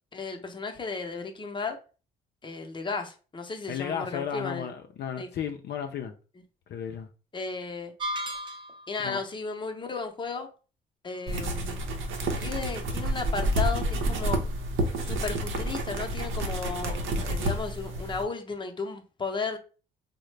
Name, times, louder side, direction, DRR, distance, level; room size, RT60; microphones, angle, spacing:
voice 1, 0.1-1.8 2.4-4.7 5.2-5.3 7.3-7.9 8.9-10.5 11.0-11.8 12.4-14.4 15.0-19.6, left 4 dB, 25° left, 0.7 m, -34 dB
voice 2, 3.7-6.1 6.7-7.1 9.0-9.2, left 8 dB, 60° left, 0.4 m, -34 dB
sound 1, 8.0-9.0, equal, 25° right, 0.6 m, -34 dB
sound 2, 11.3-18.2, right 1 dB, 80° right, 0.7 m, -29 dB
3.8 x 2.1 x 3.1 m
cardioid pair, 90°, 20 cm